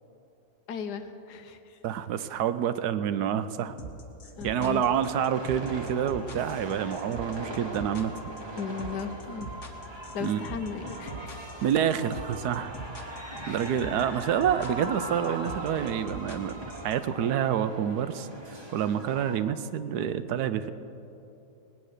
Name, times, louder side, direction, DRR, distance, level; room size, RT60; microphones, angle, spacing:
voice 1, 0.7-1.8 4.3-4.8 8.5-9.5 10.1-11.5 13.3-13.7, left 6 dB, 90° left, 8 dB, 1.5 m, -37 dB
voice 2, 1.8-3.8 4.4-8.3 10.2-10.4 11.6-12.8 13.5-20.7, right 9 dB, 80° right, 12 dB, 1.2 m, -28 dB
sound 1, 3.8-16.9, right 1 dB, 50° left, 1.6 m, -41 dB
sound 2, 4.6-19.4, right 1 dB, 20° right, 1.1 m, -40 dB
18.5 x 9.3 x 6.5 m, 2.9 s
omnidirectional pair, 1.7 m